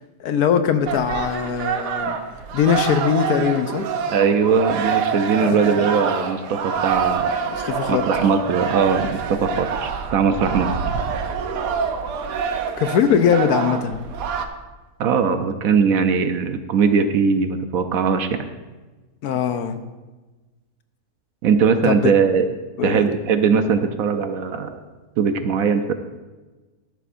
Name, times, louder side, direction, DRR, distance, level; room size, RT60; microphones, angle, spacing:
voice 1, 0.2-2.2 2.5-3.8 5.4-5.8 7.5-8.0 12.8-14.0 19.2-19.8 21.8-22.1 22.8-23.0, left 7 dB, 70° left, 9 dB, 1.1 m, -21 dB
sound 1, 0.9-14.5, right 6 dB, 85° right, 1.4 m, -26 dB
voice 2, 4.1-7.3 7.9-10.7 15.0-18.5 21.4-22.5 22.8-24.7 25.2-25.9, right 6 dB, 65° right, 8 dB, 1.0 m, -20 dB
13.5 x 11.0 x 2.6 m, 1.2 s
omnidirectional pair, 1.7 m